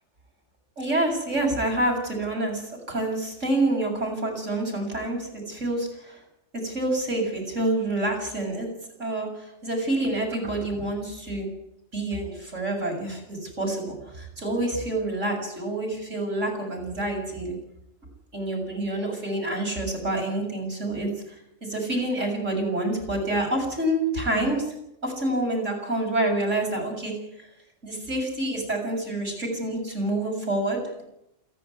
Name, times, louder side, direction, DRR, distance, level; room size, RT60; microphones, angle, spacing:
voice 1, 0.8-6.2 6.5-8.7 9.0-11.5 11.9-17.6 18.3-21.1 21.6-24.7 25.0-27.1 27.8-31.0, right 1 dB, 75° right, 0 dB, 7.5 m, -27 dB
28.0 x 11.0 x 9.6 m, 0.82 s
omnidirectional pair, 1.3 m